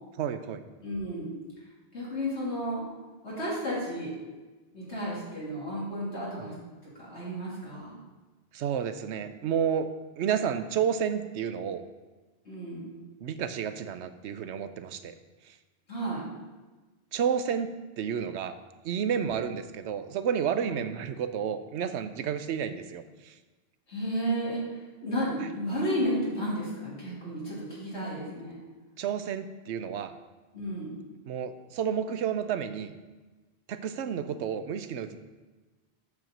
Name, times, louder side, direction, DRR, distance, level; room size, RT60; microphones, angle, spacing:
voice 1, 0.2-0.6 6.4-6.5 8.5-9.9 10.2-11.8 13.2-15.1 15.5-15.6 17.1-18.6 18.8-23.3 29.0-30.1 31.3-32.9 33.7-35.2, right 8 dB, 90° right, 10 dB, 0.9 m, -31 dB
voice 2, 0.8-1.4 1.9-2.8 3.2-4.1 4.7-6.5 6.8-8.0 12.4-13.0 15.9-16.3 19.1-19.4 20.6-20.7 23.9-24.6 25.0-28.6 30.5-30.9, equal, 85° left, -7 dB, 3.3 m, -32 dB
8.4 x 4.5 x 6.6 m, 1.2 s
omnidirectional pair, 1.1 m